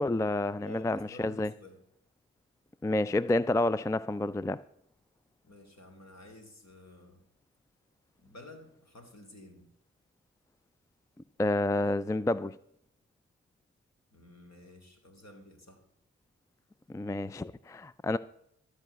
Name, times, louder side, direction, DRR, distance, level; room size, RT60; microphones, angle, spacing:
voice 1, 0.0-1.5 2.8-4.6 11.4-12.6 16.9-18.2, left 2 dB, 10° left, 0.3 m, -29 dB
voice 2, 0.6-1.8 5.4-7.2 8.2-9.7 14.1-15.8, left 1 dB, 55° left, 3.0 m, -52 dB
13.5 x 4.8 x 7.9 m
cardioid pair, 45°, 31 cm